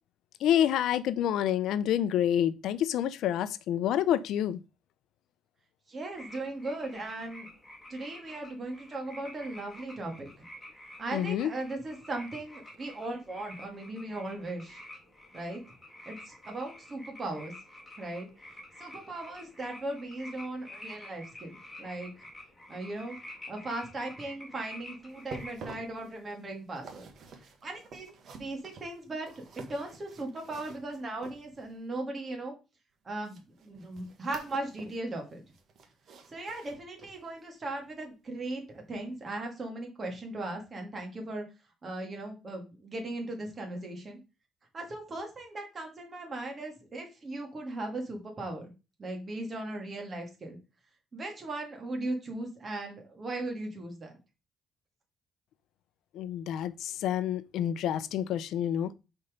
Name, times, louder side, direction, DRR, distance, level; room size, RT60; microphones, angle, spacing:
voice 1, 0.4-4.6 11.1-11.5 56.1-58.9, left 10 dB, 75° left, 0.5 m, -28 dB
voice 2, 5.9-7.5 7.9-10.3 11.0-14.8 15.3-15.6 16.1-17.5 18.0-22.1 22.7-23.2 23.5-27.1 27.6-29.3 29.6-32.5 33.0-35.4 36.3-41.4 41.8-44.2 44.7-48.7 49.0-50.6 51.1-54.2, right 2 dB, 30° right, 2.2 m, -38 dB
sound 1, 6.1-25.5, left 1 dB, 10° left, 2.5 m, -49 dB
sound 2, 25.1-31.8 33.2-35.0 35.3-37.3 37.7-37.9 38.4-38.5, right 4 dB, 55° right, 1.4 m, -49 dB
5.5 x 4.5 x 5.1 m
cardioid pair, 110°, 0 cm